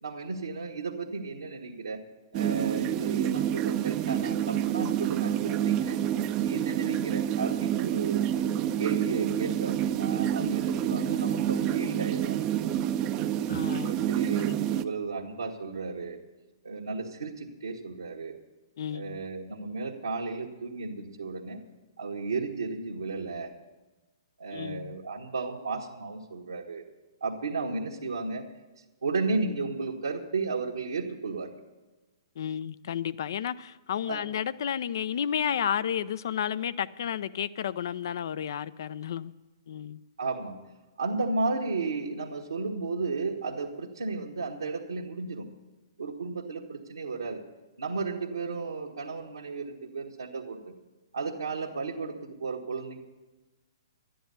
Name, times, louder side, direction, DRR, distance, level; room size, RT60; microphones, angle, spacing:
voice 1, 0.0-2.0 2.3-6.0 6.4-8.3 8.8-12.5 13.8-16.2 16.6-18.3 18.9-21.6 22.0-23.5 24.4-26.8 27.2-28.4 29.0-31.5 34.1-34.2 40.2-40.6 41.0-45.5 46.0-47.4 47.8-50.7 51.1-53.0, right 3 dB, 80° right, 1.4 m, -34 dB
sound 1, 2.3-14.8, right 10 dB, 30° right, 0.5 m, -28 dB
voice 2, 6.5-6.9 13.5-14.1 14.4-14.8 18.8-19.2 24.5-25.0 32.4-39.3 39.7-40.0, left 9 dB, 60° left, 0.5 m, -32 dB
12.0 x 10.5 x 6.8 m
figure-of-eight pair, 120°, 2 cm